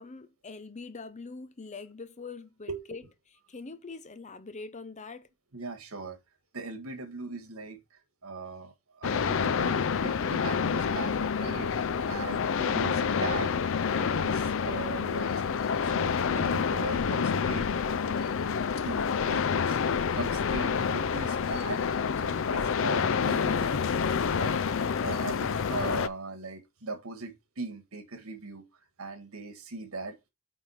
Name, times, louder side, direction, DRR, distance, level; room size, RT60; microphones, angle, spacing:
voice 1, 0.0-3.0 3.5-5.3, left 4 dB, 35° left, 0.8 m, -43 dB
voice 2, 5.5-6.2 6.5-13.5 13.9-15.4 15.8-17.7 18.0-18.1 18.8-19.8 20.1-28.6 29.0-30.2, right 3 dB, 85° right, 1.6 m, -40 dB
sound 1, 9.0-26.1, left 6 dB, 65° left, 0.5 m, -28 dB
9.1 x 3.7 x 4.9 m
head